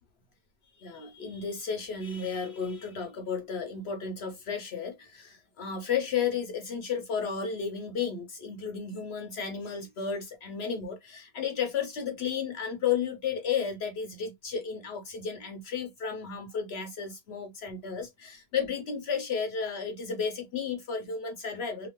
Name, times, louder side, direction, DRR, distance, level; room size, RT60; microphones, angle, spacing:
voice 1, 0.8-21.9, left 6 dB, 60° left, 0.7 m, -33 dB
2.9 x 2.0 x 2.9 m
omnidirectional pair, 1.5 m